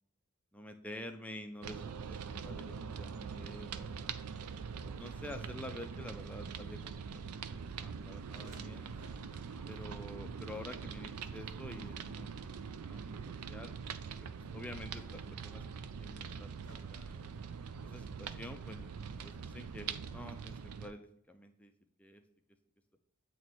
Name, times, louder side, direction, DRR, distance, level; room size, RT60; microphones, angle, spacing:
voice 1, 0.5-4.1 4.8-8.9 9.7-13.7 14.2-16.5 16.9-17.2 17.8-18.9 19.2-21.7 22.0-22.2, left 1 dB, 5° left, 6 dB, 0.4 m, -49 dB
sound 1, 1.6-20.9, right 6 dB, 85° right, 0.4 m, -43 dB
sound 2, 2.3-20.3, equal, 50° right, 1.3 m, -61 dB
7.6 x 3.0 x 4.3 m, 0.76 s
head